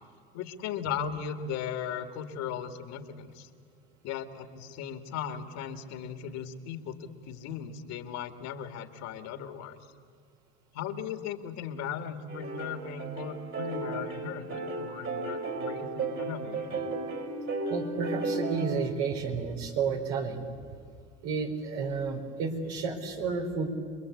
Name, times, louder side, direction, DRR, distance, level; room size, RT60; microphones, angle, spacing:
voice 1, 0.3-3.5 4.0-9.8 10.7-16.9, left 7 dB, 65° left, 8 dB, 2.3 m, -37 dB
sound 1, 12.3-18.9, right 3 dB, 45° right, 5.0 m, -34 dB
voice 2, 17.7-20.5 21.2-23.7, right 5 dB, 75° right, 3 dB, 4.5 m, -31 dB
27.5 x 22.0 x 8.6 m, 2.3 s
supercardioid pair, 90°, 29 cm